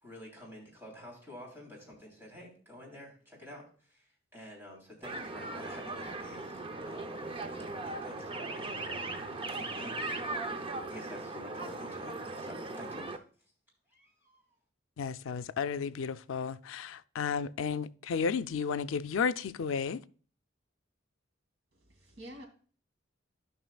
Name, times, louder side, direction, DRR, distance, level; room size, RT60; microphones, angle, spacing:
voice 1, 0.0-7.3 7.8-9.2 9.5-10.1 10.5-13.2 13.9-14.4, left 1 dB, 10° right, 3.2 m, -50 dB
sound 1, 5.0-13.2, right 2 dB, 25° right, 0.6 m, -38 dB
voice 2, 15.0-20.0, left 6 dB, 85° left, 0.4 m, -33 dB
voice 3, 21.7-22.4, equal, 70° right, 2.4 m, -48 dB
12.5 x 5.7 x 2.3 m
head